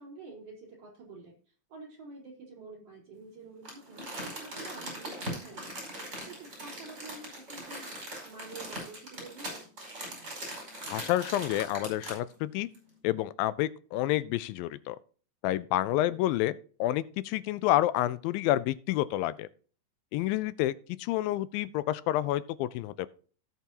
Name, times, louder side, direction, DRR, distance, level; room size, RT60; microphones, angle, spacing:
voice 1, 0.0-1.3 1.7-5.8 6.0-7.9 8.2-9.7 15.9-16.1, right 3 dB, 45° right, 5.3 m, -48 dB
Crumpling crinkling, 3.6-12.3 12.7-12.8, right 1 dB, 25° right, 5.5 m, -40 dB
voice 2, 10.8-12.7 13.0-15.0 15.4-16.5 16.8-19.5 20.1-23.1, left 14 dB, 85° left, 2.3 m, -29 dB
17.5 x 6.1 x 2.8 m
omnidirectional pair, 4.1 m